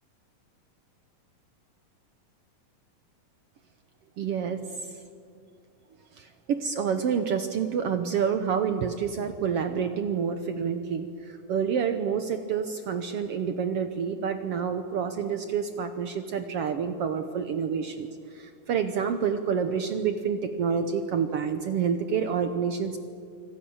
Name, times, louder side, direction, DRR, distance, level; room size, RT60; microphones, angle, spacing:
voice 1, 4.2-4.6 6.2-18.1 18.3-23.0, right 7 dB, 80° right, 8 dB, 1.3 m, -28 dB
25.5 x 25.5 x 7.2 m, 2.3 s
omnidirectional pair, 4.0 m